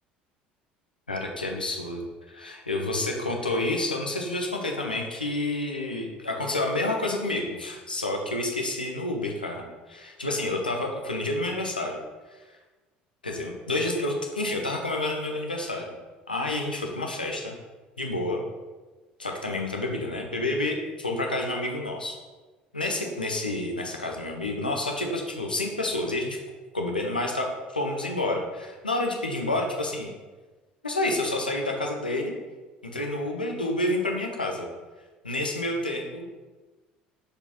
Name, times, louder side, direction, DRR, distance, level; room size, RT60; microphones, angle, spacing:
voice 1, 1.1-2.0 2.3-12.0 13.2-16.0 16.3-17.6 18.0-18.4 19.2-22.2 22.7-26.4 26.7-30.1 30.8-32.3 32.8-34.7 35.2-36.3, left 2 dB, 85° left, 2 dB, 0.8 m, -29 dB
6.6 x 4.8 x 3.0 m, 1.3 s
figure-of-eight pair, 60°, 5 cm